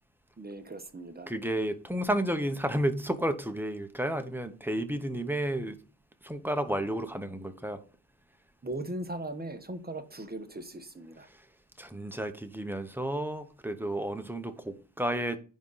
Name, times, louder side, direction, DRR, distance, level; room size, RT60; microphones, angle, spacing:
voice 1, 0.4-1.3 8.6-11.3, right 1 dB, 20° right, 1.2 m, -39 dB
voice 2, 1.3-5.8 6.2-7.8 11.8-15.4, right 1 dB, 5° right, 1.0 m, -32 dB
10.5 x 3.9 x 5.6 m
wide cardioid pair, 125°, 45 cm